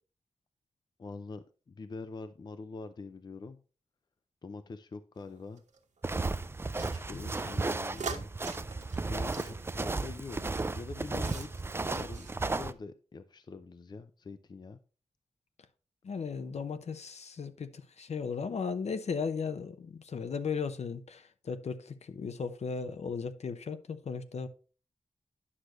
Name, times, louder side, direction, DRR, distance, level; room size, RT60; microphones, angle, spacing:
voice 1, 1.0-3.6 4.4-5.6 6.9-8.3 9.1-11.5 11.9-14.8, left 4 dB, 35° left, 0.5 m, -44 dB
sound 1, 5.2-6.1 6.8-10.7 11.0-11.6 11.9-12.4, right 5 dB, 85° right, 1.3 m, -44 dB
sound 2, 6.0-12.7, right 3 dB, 20° right, 0.4 m, -34 dB
voice 2, 16.0-24.5, left 5 dB, 65° left, 0.8 m, -36 dB
9.8 x 6.5 x 3.1 m
wide cardioid pair, 135°, 12 cm